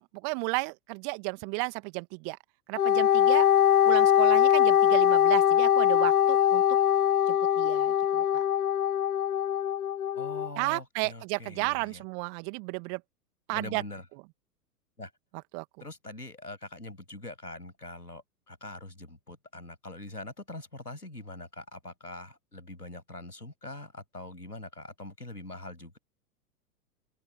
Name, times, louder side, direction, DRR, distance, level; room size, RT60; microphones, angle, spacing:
voice 1, 0.0-2.4 2.7-3.5 3.9-6.6 7.3-8.4 10.6-13.0 13.5-13.8 15.5-15.6, right 40 dB or more, 40° right, 2.3 m, -33 dB
Wind instrument woodwind instrument, 2.8-10.5, left 10 dB, 65° left, 1.4 m, -22 dB
voice 2, 10.1-12.0 13.5-14.0 15.0-15.1 15.8-26.0, left 2 dB, 90° left, 7.7 m, -43 dB
open air
figure-of-eight pair, 100°, 46 cm